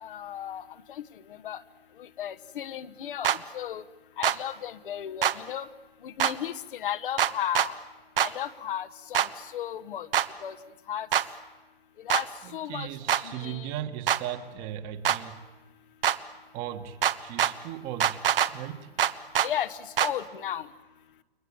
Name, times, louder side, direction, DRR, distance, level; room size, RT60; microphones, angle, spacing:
voice 1, 0.0-1.0 1.4-1.6 2.0-3.8 4.2-5.7 6.0-7.8 8.2-10.1 10.4-10.6 10.9-11.1 12.0-12.3 12.5-13.7 19.4-20.7, left 10 dB, 55° left, 1.3 m, -35 dB
sound 1, 3.2-3.4 4.2-4.4 5.2-5.4 6.2-6.3 7.2-7.7 8.2-8.3 9.1-9.3 10.1-10.3 11.1-11.3 12.1-12.2 13.1-13.2 14.1-14.2 15.0-15.2 16.0-16.2 17.0-17.5 18.0-18.5 19.0-19.5 20.0-20.1, right 10 dB, 65° right, 1.4 m, -23 dB
voice 2, 12.4-15.4 16.5-18.2 18.5-18.9, right 11 dB, 30° right, 1.7 m, -37 dB
30.0 x 22.5 x 8.8 m
hypercardioid pair, 130°, 31 cm